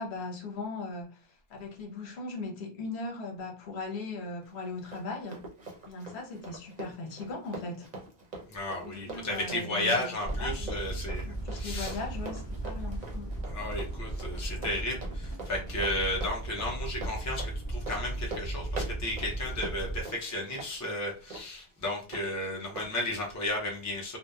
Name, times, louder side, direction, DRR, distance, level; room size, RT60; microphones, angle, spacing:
voice 1, 0.0-5.5 5.8-7.9 8.8-10.1 10.4-10.8 11.2-13.4, left 3 dB, 80° left, 1.0 m, -39 dB
Run, 4.4-22.2 22.8-22.9, right 3 dB, 45° right, 0.7 m, -44 dB
voice 2, 8.5-11.3 11.5-12.0 13.5-24.2, left 1 dB, 20° left, 0.5 m, -33 dB
sound 1, 10.2-20.0, right 1 dB, 5° left, 1.1 m, -36 dB
2.7 x 2.1 x 2.2 m
omnidirectional pair, 1.1 m